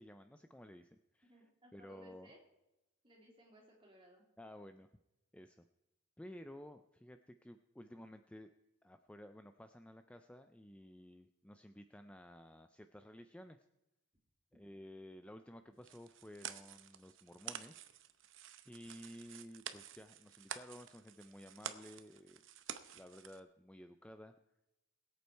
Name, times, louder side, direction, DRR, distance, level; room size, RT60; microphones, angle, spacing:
voice 1, 0.0-2.3 4.4-4.9 5.3-5.7 6.2-8.5 8.8-13.7 14.5-17.8 18.6-22.4 22.9-24.3, left 1 dB, 5° left, 8 dB, 0.3 m, -54 dB
voice 2, 1.3-2.4 3.0-4.2, right 1 dB, 25° right, -2 dB, 3.3 m, -62 dB
sound 1, 15.8-23.4, right 9 dB, 60° right, 0.8 m, -50 dB
21.5 x 8.3 x 4.5 m, 0.95 s
head